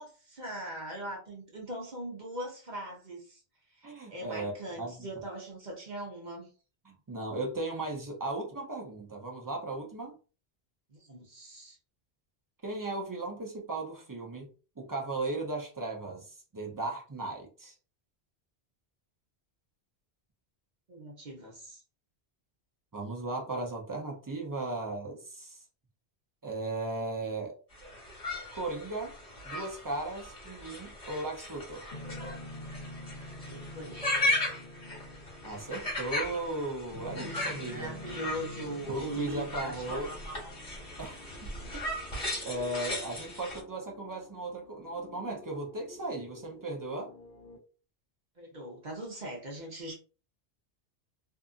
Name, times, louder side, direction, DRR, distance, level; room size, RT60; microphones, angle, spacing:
voice 1, 0.0-3.4 3.7-6.5 10.9-11.8 20.9-21.8 33.4-34.3 37.7-40.0 48.4-49.9, right 1 dB, 50° right, -1 dB, 0.8 m, -41 dB
voice 2, 3.8-4.5 4.8-4.9 6.8-10.1 12.6-14.5 14.8-17.7 22.9-25.6 26.4-27.6 28.5-29.1 29.4-31.9 35.4-37.9 38.9-40.1 41.0-41.8 42.4-47.1, right 2 dB, 25° right, 0 dB, 0.4 m, -36 dB
sound 1, 27.7-43.6, left 1 dB, 35° left, 1.4 m, -37 dB
sound 2, 31.9-47.6, left 1 dB, 65° left, 0.9 m, -48 dB
2.7 x 2.4 x 2.4 m, 0.37 s
omnidirectional pair, 1.1 m